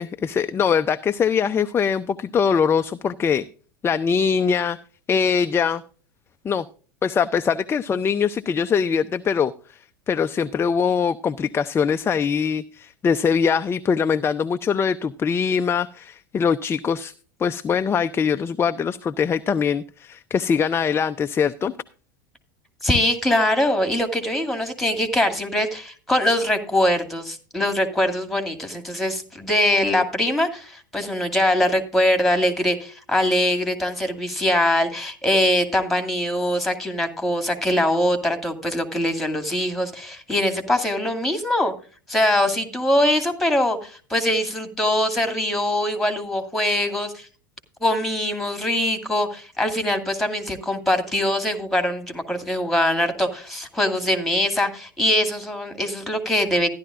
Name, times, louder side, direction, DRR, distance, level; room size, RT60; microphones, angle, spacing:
voice 1, 0.0-3.5 3.8-4.8 5.1-5.8 6.4-6.7 7.0-9.8 10.1-17.1 17.4-21.7, left 6 dB, 20° left, 0.5 m, -22 dB
voice 2, 22.8-41.7 42.1-47.3 47.8-56.7, left 1 dB, ahead, 2.3 m, -22 dB
14.5 x 11.5 x 2.5 m
hypercardioid pair, 85°, 11 cm